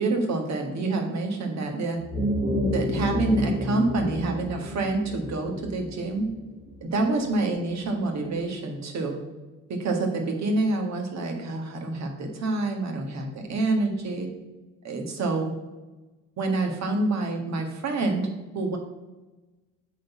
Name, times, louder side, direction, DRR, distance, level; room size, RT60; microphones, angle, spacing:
voice 1, 0.0-2.0 2.7-6.3 6.8-9.2 9.7-14.3 14.8-15.5 16.4-18.3 18.5-18.8, right 2 dB, 45° right, 3 dB, 1.8 m, -27 dB
sound 1, 2.0-6.8, left 1 dB, 30° right, 2.0 m, -29 dB
8.4 x 4.1 x 5.9 m, 1.1 s
figure-of-eight pair, 55°, 38 cm